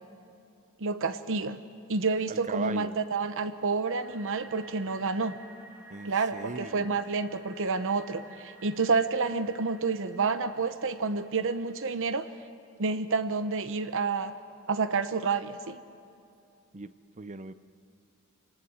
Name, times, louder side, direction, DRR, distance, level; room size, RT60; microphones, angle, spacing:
voice 1, 0.8-1.6 1.9-5.4 6.0-12.3 12.8-14.3 14.7-15.8, right 4 dB, 65° right, 0.9 m, -29 dB
voice 2, 2.3-3.0 5.9-7.0 16.7-17.5, right 3 dB, 35° right, 0.6 m, -39 dB
sound 1, 4.0-12.0, right 2 dB, 10° right, 2.5 m, -53 dB
27.5 x 19.0 x 7.9 m
head